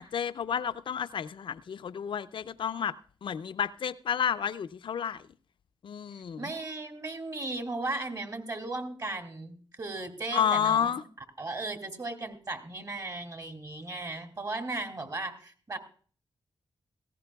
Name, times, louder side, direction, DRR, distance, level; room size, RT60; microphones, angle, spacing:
voice 1, 0.0-2.9 3.2-5.2 5.8-6.5 10.3-11.0, left 8 dB, 70° left, 0.5 m, -30 dB
voice 2, 6.4-10.9 11.4-15.8, right 2 dB, 40° right, 2.5 m, -36 dB
17.5 x 15.5 x 2.3 m
cardioid pair, 60°, 9 cm